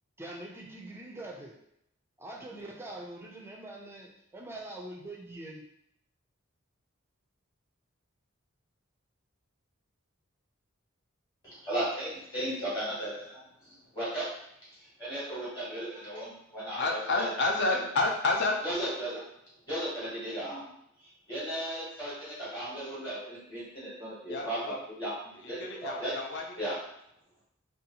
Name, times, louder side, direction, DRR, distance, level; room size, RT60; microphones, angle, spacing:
voice 1, 0.2-1.6 2.2-5.6, right 1 dB, 10° right, -1 dB, 0.3 m, -43 dB
voice 2, 11.4-14.3 15.0-17.3 17.7-17.8 18.6-19.2 19.7-20.6 21.0-26.1 26.6-26.8, right 1 dB, 20° left, -8 dB, 0.9 m, -36 dB
voice 3, 16.8-18.6 24.3-24.8 25.7-26.8, left 2 dB, 55° left, 0 dB, 0.5 m, -29 dB
2.6 x 2.2 x 2.8 m, 0.75 s
head